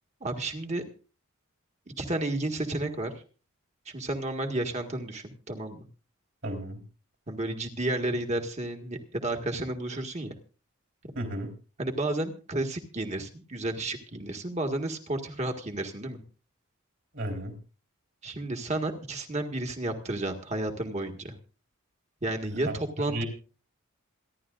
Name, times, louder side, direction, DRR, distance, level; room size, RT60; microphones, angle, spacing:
voice 1, 0.2-0.8 2.0-3.1 3.9-5.8 7.3-10.3 11.8-16.2 18.2-21.3 22.2-23.2, right 2 dB, 30° right, 4 dB, 1.8 m, -32 dB
voice 2, 6.4-6.8 11.2-11.5 17.1-17.5 22.5-22.8 23.1-23.2, right 1 dB, 55° right, 3 dB, 4.0 m, -33 dB
27.5 x 11.5 x 2.6 m, 0.36 s
head